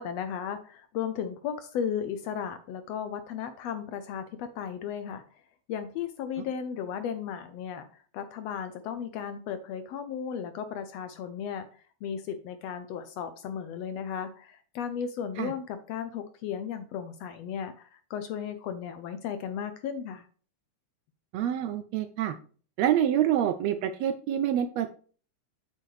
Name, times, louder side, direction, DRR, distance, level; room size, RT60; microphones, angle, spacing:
voice 1, 0.0-5.2 5.7-7.9 8.1-11.7 12.0-20.3, left 8 dB, 75° left, 9 dB, 1.6 m, -35 dB
voice 2, 21.3-22.4 22.8-24.9, right 10 dB, 75° right, 9 dB, 1.6 m, -26 dB
7.7 x 7.5 x 3.2 m, 0.41 s
omnidirectional pair, 3.4 m